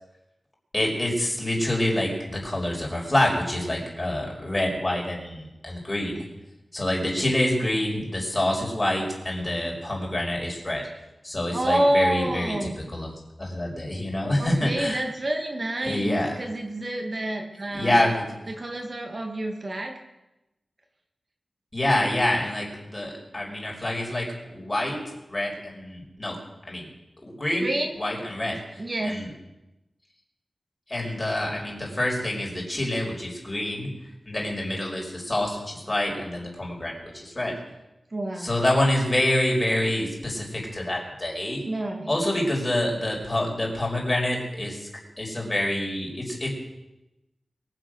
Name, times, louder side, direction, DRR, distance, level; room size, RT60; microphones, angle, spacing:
voice 1, 0.7-6.2 6.7-10.8 11.2-15.0 15.8-16.4 17.7-18.3 21.7-25.0 25.3-26.4 26.7-26.9 27.2-29.3 30.9-33.9 34.3-37.6 38.4-41.6 42.1-44.9 45.2-46.5, left 1 dB, 30° left, -2 dB, 5.3 m, -27 dB
voice 2, 11.5-12.7 14.4-18.1 18.5-20.0 27.6-27.9 28.8-29.2 38.1-38.5 41.7-42.2, right 1 dB, 45° right, 2 dB, 2.0 m, -28 dB
23.0 x 7.8 x 6.4 m, 0.97 s
wide cardioid pair, 80°, 0 cm